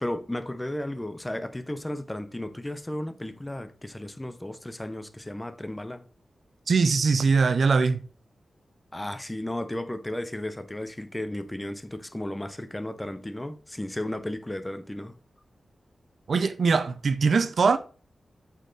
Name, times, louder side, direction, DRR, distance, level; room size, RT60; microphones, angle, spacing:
voice 1, 0.0-6.1 8.9-15.1, left 1 dB, 10° left, 0.5 m, -34 dB
voice 2, 6.7-8.0 16.3-17.8, right 4 dB, 60° right, 0.5 m, -22 dB
8.0 x 4.4 x 3.8 m
wide cardioid pair, 170°, 0 cm